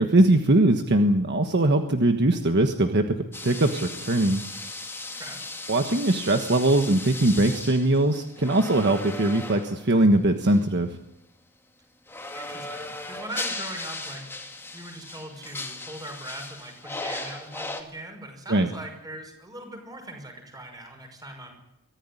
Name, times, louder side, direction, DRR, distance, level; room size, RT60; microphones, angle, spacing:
voice 1, 0.0-4.5 5.7-10.9 18.5-18.7, right 1 dB, 50° right, 5 dB, 1.4 m, -21 dB
sound 1, 3.3-9.9 10.4-10.6 12.1-17.8, left 2 dB, 10° left, 2.4 m, -37 dB
voice 2, 5.1-5.4 12.3-21.5, right 1 dB, 15° right, 4 dB, 5.9 m, -41 dB
24.0 x 15.0 x 10.0 m, 0.85 s
head